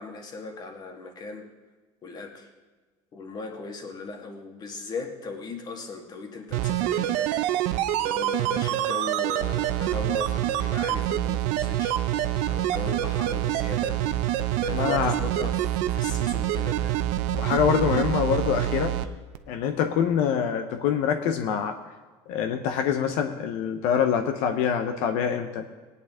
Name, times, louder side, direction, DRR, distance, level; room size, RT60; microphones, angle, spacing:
voice 1, 0.0-1.5 2.0-2.5 3.1-7.7 8.0-14.0 14.6-17.0, left 4 dB, 35° left, 3 dB, 1.9 m, -38 dB
sound 1, 6.5-19.1 19.3-19.4, right 12 dB, 80° right, 0.7 m, -26 dB
voice 2, 14.7-15.1 17.4-18.9 19.5-21.8 22.3-25.7, left 8 dB, 80° left, 6 dB, 0.9 m, -25 dB
19.0 x 9.8 x 3.7 m, 1.3 s
cardioid pair, 140°, 12 cm